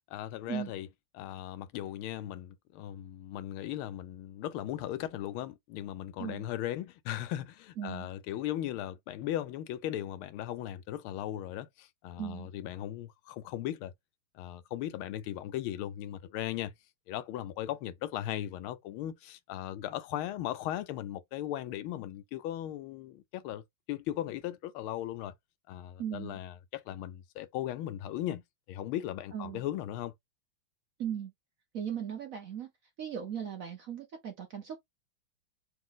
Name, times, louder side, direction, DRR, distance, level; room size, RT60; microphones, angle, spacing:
voice 1, 0.1-0.9 1.1-13.9 14.3-16.7 17.1-23.6 23.9-25.3 25.7-28.4 28.7-30.1, left 12 dB, 80° left, 1.4 m, -37 dB
voice 2, 7.8-8.1 12.2-12.5 26.0-26.4 29.3-29.6 31.0-31.3 31.7-32.7 33.0-34.8, right 9 dB, 55° right, 1.0 m, -37 dB
4.2 x 2.6 x 3.8 m
omnidirectional pair, 2.3 m